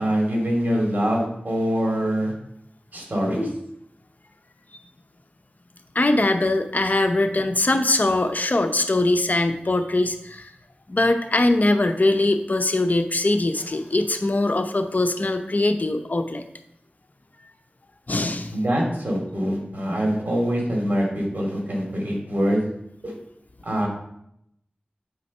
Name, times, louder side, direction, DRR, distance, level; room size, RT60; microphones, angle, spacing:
voice 1, 0.0-2.3 2.9-3.5 18.5-22.6 23.0-23.1 23.6-23.9, equal, 55° right, -1 dB, 2.7 m, -24 dB
voice 2, 5.9-10.5 10.9-16.4 18.1-18.5, left 2 dB, 50° left, 7 dB, 0.7 m, -22 dB
8.7 x 4.1 x 5.4 m, 0.77 s
wide cardioid pair, 40°, 3 cm